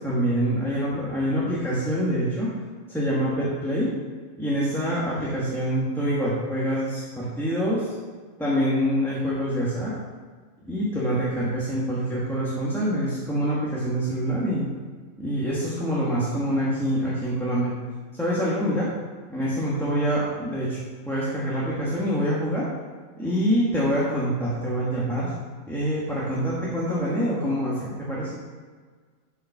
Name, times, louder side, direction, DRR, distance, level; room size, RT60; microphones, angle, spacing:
voice 1, 0.0-2.5 2.9-3.9 4.4-7.9 8.4-9.9 10.7-14.7 15.2-17.7 18.1-18.9 19.3-20.8 21.1-22.7 23.2-25.3 25.7-28.3, equal, ahead, -8 dB, 1.9 m, -25 dB
9.0 x 5.7 x 6.0 m, 1.5 s
omnidirectional pair, 1.5 m